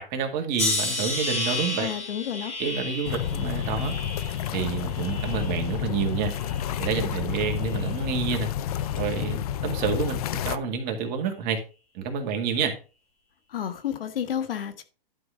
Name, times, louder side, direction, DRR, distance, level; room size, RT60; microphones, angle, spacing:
voice 1, 0.0-1.9 2.6-4.0 4.5-6.3 6.8-8.5 9.0-11.6 11.9-12.7, right 6 dB, 30° right, 1.8 m, -28 dB
sound 1, 0.6-5.7 6.2-6.9 7.6-7.9, left 2 dB, 20° left, 3.4 m, -32 dB
voice 2, 1.8-2.5 13.5-14.8, left 9 dB, 70° left, 1.5 m, -31 dB
sound 2, 3.1-10.6, left 10 dB, 40° left, 0.5 m, -30 dB
11.5 x 5.0 x 4.9 m
hypercardioid pair, 150°, 29 cm